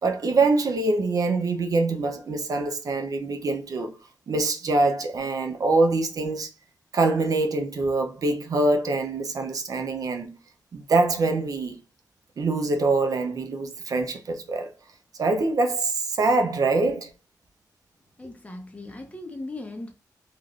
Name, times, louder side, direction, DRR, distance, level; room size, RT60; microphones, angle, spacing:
voice 1, 0.0-3.9 4.3-6.5 6.9-10.4 10.7-11.8 12.4-14.7 15.2-17.1, right 3 dB, 65° right, 0.5 m, -24 dB
voice 2, 18.2-19.9, left 2 dB, 20° left, 0.8 m, -38 dB
3.1 x 2.4 x 2.4 m
cardioid pair, 80°, 7 cm